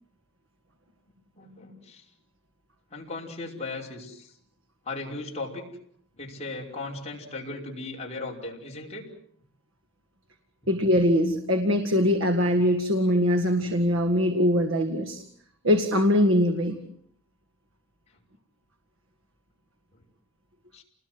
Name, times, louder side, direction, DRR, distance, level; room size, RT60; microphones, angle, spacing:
voice 1, 1.4-2.0 2.9-4.3 4.9-5.7 6.1-9.1 20.7-20.8, left 2 dB, 30° left, -1 dB, 5.4 m, -37 dB
voice 2, 10.7-15.2 15.6-16.8, equal, 60° right, 7 dB, 2.0 m, -22 dB
29.5 x 20.5 x 7.9 m, 0.65 s
head